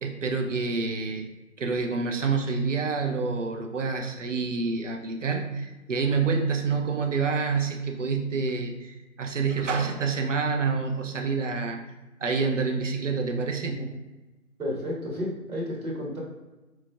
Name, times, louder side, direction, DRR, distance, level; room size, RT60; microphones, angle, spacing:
voice 1, 0.0-1.2 1.6-11.8 12.2-13.8, right 4 dB, 60° right, 3 dB, 0.6 m, -27 dB
voice 2, 14.6-16.2, left 1 dB, 80° right, -3 dB, 1.4 m, -32 dB
4.0 x 3.1 x 2.3 m, 1.1 s
figure-of-eight pair, 155°, 43 cm